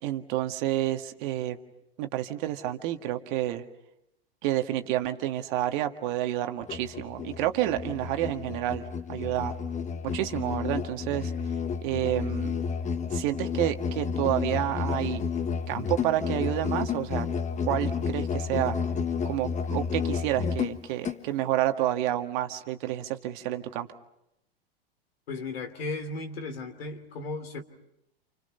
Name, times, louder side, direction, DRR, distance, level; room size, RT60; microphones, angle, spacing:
voice 1, 0.0-1.6 2.0-3.6 4.4-9.5 10.1-11.3 11.8-12.6 13.1-15.2 15.7-17.3 17.6-18.8 19.3-24.0, right 13 dB, 55° right, 6 dB, 1.9 m, -29 dB
Musical instrument, 6.6-21.2, left 6 dB, 25° left, 1.5 m, -31 dB
voice 2, 25.3-27.6, left 3 dB, 75° left, 7 dB, 3.2 m, -35 dB
29.0 x 28.5 x 5.7 m, 0.83 s
hypercardioid pair, 100°, 30 cm